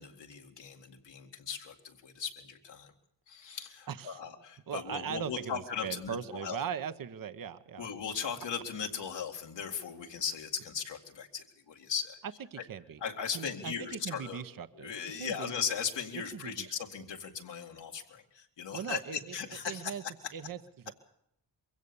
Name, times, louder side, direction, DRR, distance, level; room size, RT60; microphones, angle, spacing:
voice 1, 0.0-2.9 3.3-6.6 7.8-12.2 12.6-12.7 13.0-14.4 14.7-20.0, left 7 dB, 85° left, 2 dB, 2.2 m, -38 dB
voice 2, 3.9-4.2 4.7-7.9 12.5-13.0 13.3-15.5 16.3-16.7 18.7-19.4 19.6-20.0 20.3-20.9, right 7 dB, 50° right, 12 dB, 0.9 m, -39 dB
22.5 x 16.5 x 7.0 m, 0.74 s
cardioid pair, 60°, 42 cm